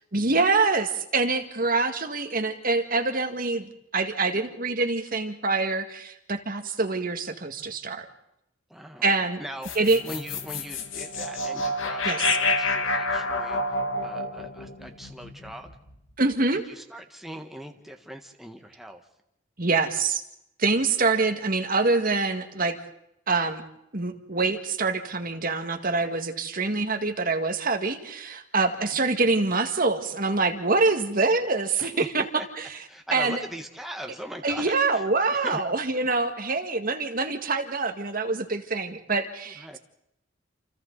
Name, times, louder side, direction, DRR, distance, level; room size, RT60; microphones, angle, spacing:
voice 1, 0.1-8.1 9.0-9.4 9.8-10.0 12.1-12.3 16.2-16.6 19.6-20.2 20.6-22.8 23.3-23.6 23.9-32.7 33.1-33.4 34.4-39.8, right 3 dB, 45° right, 6 dB, 2.0 m, -25 dB
voice 2, 8.7-9.7 10.0-15.7 16.5-19.0 28.6-29.0 31.8-32.5 32.9-35.0 35.3-35.6 39.5-39.8, equal, ahead, 3 dB, 1.5 m, -41 dB
sound 1, 9.6-15.9, left 2 dB, 80° left, 2.1 m, -28 dB
29.0 x 28.5 x 4.1 m, 0.83 s
head